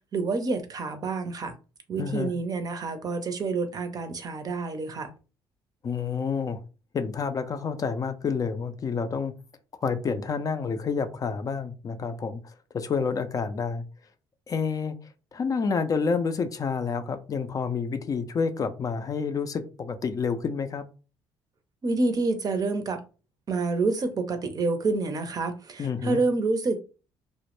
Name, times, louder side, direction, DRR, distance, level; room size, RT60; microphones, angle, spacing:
voice 1, 0.1-1.6 1.9-5.1 21.8-23.0 23.5-26.8, right 3 dB, 40° right, 0.5 m, -28 dB
voice 2, 2.0-2.3 5.8-6.6 6.9-9.3 9.8-13.8 14.5-14.9 15.3-20.8 25.8-26.2, left 5 dB, 40° left, 0.4 m, -29 dB
2.1 x 2.0 x 3.0 m
supercardioid pair, 80°, 10 cm